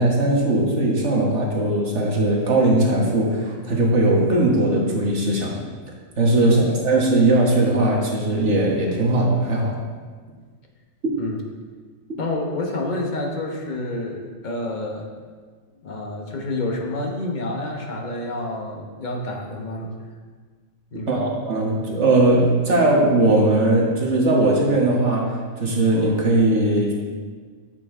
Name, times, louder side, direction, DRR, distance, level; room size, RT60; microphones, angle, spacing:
voice 1, 0.0-5.6 6.2-9.8 21.1-26.9, right 2 dB, 60° right, -2 dB, 1.6 m, -19 dB
voice 2, 6.4-6.7 11.2-11.4 12.2-15.1 15.8-19.9 20.9-21.4, left 2 dB, 40° left, 0 dB, 1.1 m, -28 dB
8.3 x 6.7 x 3.7 m, 1.5 s
omnidirectional pair, 1.4 m